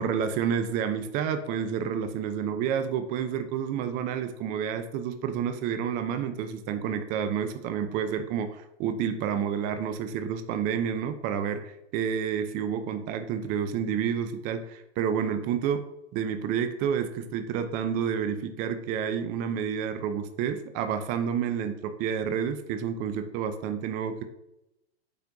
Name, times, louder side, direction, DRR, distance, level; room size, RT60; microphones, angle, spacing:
voice 1, 0.0-15.8 16.1-24.2, right 7 dB, 25° right, 9 dB, 0.5 m, -29 dB
8.1 x 4.3 x 2.6 m, 0.87 s
hypercardioid pair, 115°, 33 cm